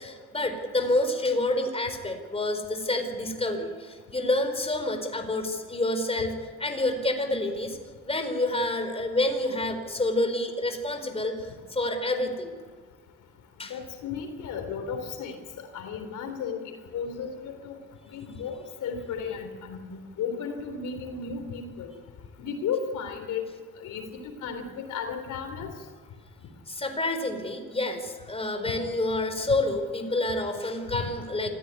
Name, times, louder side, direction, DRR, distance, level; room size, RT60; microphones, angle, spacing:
voice 1, 0.0-7.8 8.0-12.5 13.6-13.7 26.7-31.5, left 2 dB, 20° left, 6 dB, 4.3 m, -28 dB
voice 2, 13.7-15.4 15.7-16.6 16.9-17.8 18.1-21.9 22.4-23.4 23.8-24.0 24.4-25.7 30.9-31.1, left 6 dB, 80° left, 6 dB, 3.7 m, -34 dB
26.0 x 15.0 x 9.6 m, 1.5 s
cardioid pair, 90°, 30 cm